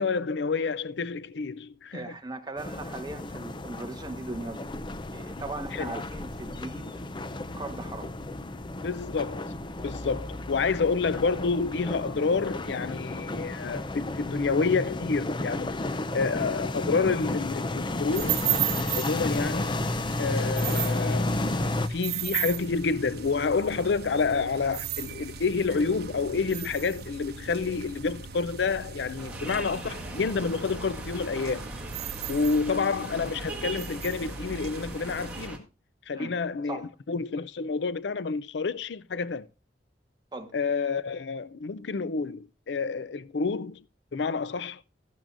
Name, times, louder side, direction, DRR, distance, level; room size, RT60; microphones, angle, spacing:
voice 1, 0.0-2.1 5.7-5.9 8.8-9.5 9.8-15.7 16.1-18.5 18.9-19.8 20.2-21.3 21.9-31.7 32.3-35.7 36.1-39.5 40.5-43.8 44.1-44.8, left 4 dB, 75° left, 0.5 m, -29 dB
voice 2, 1.9-4.6 5.1-8.1 32.5-32.6 36.1-36.3 36.7-36.9 40.3-40.5, right 2 dB, 25° right, 1.3 m, -39 dB
sound 1, 2.6-21.9, left 2 dB, 25° left, 0.6 m, -32 dB
sound 2, 18.1-35.5, right 10 dB, 60° right, 1.1 m, -36 dB
sound 3, 29.2-35.6, right 2 dB, 10° right, 1.9 m, -40 dB
13.5 x 12.0 x 2.5 m
head